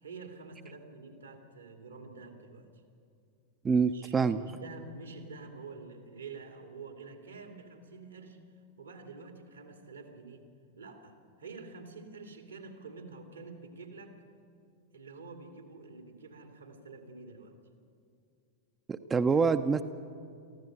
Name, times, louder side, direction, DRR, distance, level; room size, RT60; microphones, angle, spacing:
voice 1, 0.0-2.7 3.9-8.4 8.8-10.4 10.7-14.2 14.9-17.5, right 4 dB, 85° right, 4 dB, 2.8 m, -48 dB
voice 2, 3.6-4.4 18.9-19.8, right 5 dB, 20° right, 10 dB, 0.6 m, -26 dB
23.5 x 15.0 x 7.9 m, 2.4 s
figure-of-eight pair, 95°, 0 cm